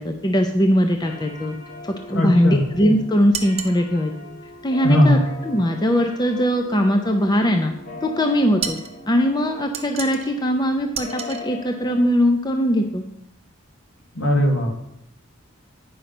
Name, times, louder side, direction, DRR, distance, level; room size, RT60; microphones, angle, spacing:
voice 1, 0.0-1.5 1.9-4.1 4.6-5.2 5.4-7.7 8.0-8.8 9.1-13.0, equal, 20° left, 5 dB, 0.6 m, -20 dB
sound 1, 1.0-12.0, left 2 dB, 40° left, 1.5 m, -40 dB
voice 2, 2.1-2.6 4.8-5.2 14.1-14.7, equal, 70° left, 1 dB, 2.0 m, -18 dB
sound 2, 3.3-3.8 8.6-8.9 9.7-10.3 10.9-11.4, right 7 dB, 30° right, 0.7 m, -30 dB
9.4 x 5.3 x 6.0 m, 0.77 s
head